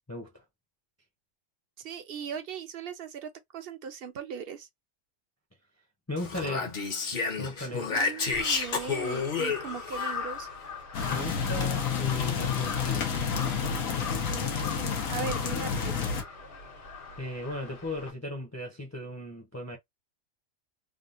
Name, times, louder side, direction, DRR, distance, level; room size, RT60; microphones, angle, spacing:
voice 1, 0.1-0.4 6.1-6.8 7.4-8.0 11.1-13.1 17.2-19.8, left 1 dB, 15° left, 0.6 m, -37 dB
voice 2, 1.8-4.7 8.0-10.5 14.3-16.1, right 7 dB, 55° right, 0.8 m, -39 dB
Speech, 6.2-10.1, left 4 dB, 45° left, 0.9 m, -30 dB
Crow, 8.3-18.1, left 5 dB, 65° left, 1.5 m, -41 dB
sound 1, 10.9-16.2, left 6 dB, 85° left, 1.2 m, -29 dB
3.6 x 2.3 x 2.5 m
omnidirectional pair, 1.3 m